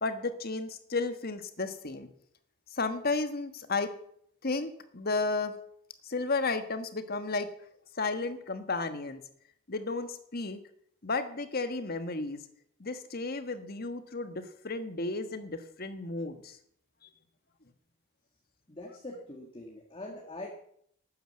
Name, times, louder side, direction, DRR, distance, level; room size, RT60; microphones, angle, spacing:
voice 1, 0.0-2.1 2.7-3.9 4.4-5.5 6.0-7.5 8.0-9.2 9.7-10.6 11.0-12.4 12.8-16.6 17.0-17.1, left 3 dB, 45° left, 9 dB, 1.4 m, -33 dB
voice 2, 18.7-20.5, left 2 dB, 25° left, 1 dB, 1.9 m, -43 dB
12.5 x 9.3 x 7.8 m, 0.68 s
head